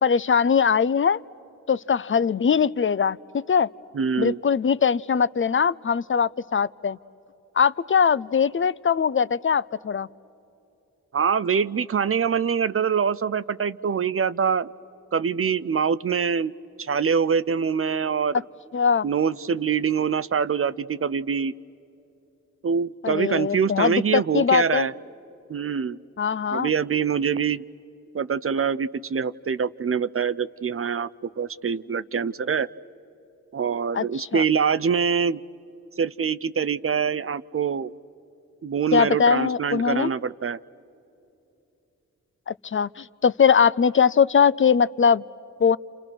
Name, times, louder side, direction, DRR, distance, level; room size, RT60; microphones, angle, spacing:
voice 1, 0.0-1.2 1.7-3.7 4.2-7.0 7.6-10.1 18.7-19.0 23.0-24.9 26.2-26.7 33.9-34.4 38.9-40.1 42.5-45.2 45.6-45.8, left 6 dB, 40° left, 18 dB, 0.5 m, -21 dB
voice 2, 3.9-4.4 11.1-14.7 15.1-16.5 16.8-18.4 19.0-21.5 22.6-24.9 25.5-26.0 26.5-27.6 28.1-31.1 31.4-32.7 33.5-35.4 36.0-37.9 38.6-40.6, right 6 dB, 45° right, 16 dB, 0.5 m, -24 dB
30.0 x 28.0 x 6.2 m, 2.8 s
cardioid pair, 50°, 32 cm